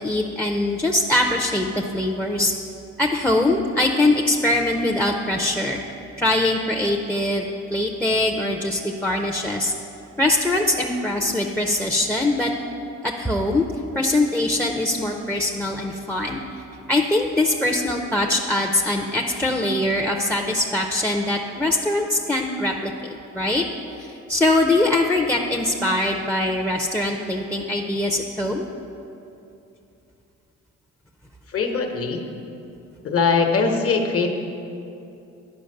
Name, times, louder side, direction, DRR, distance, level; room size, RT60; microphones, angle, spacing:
voice 1, 0.0-2.5 3.0-5.8 6.2-9.7 10.2-12.5 13.0-13.7 13.9-16.4 16.9-23.6 24.0-28.7, left 1 dB, 5° left, 3 dB, 0.6 m, -22 dB
voice 2, 31.5-32.3 33.0-34.3, left 4 dB, 50° left, 4 dB, 1.1 m, -21 dB
10.5 x 5.1 x 6.5 m, 2.8 s
cardioid pair, 90°, 30 cm